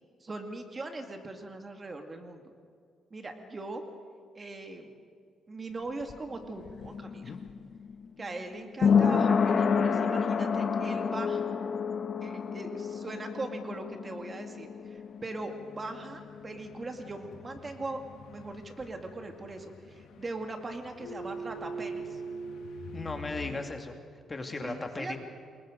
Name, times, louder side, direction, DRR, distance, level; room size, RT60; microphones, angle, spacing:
voice 1, 0.2-2.4 3.1-3.8 4.3-4.9 5.5-7.3 8.2-11.5 12.2-22.2 24.6-25.2, right 2 dB, 30° right, 5 dB, 2.2 m, -40 dB
sound 1, 5.7-17.2 17.5-17.6, left 6 dB, 50° left, 1.1 m, -29 dB
sound 2, 15.4-23.6, right 2 dB, 75° left, 1.5 m, -44 dB
voice 2, 22.9-23.9 24.3-25.2, left 3 dB, 25° left, 4 dB, 2.3 m, -36 dB
28.0 x 21.5 x 5.2 m, 2.2 s
cardioid pair, 90°, 0 cm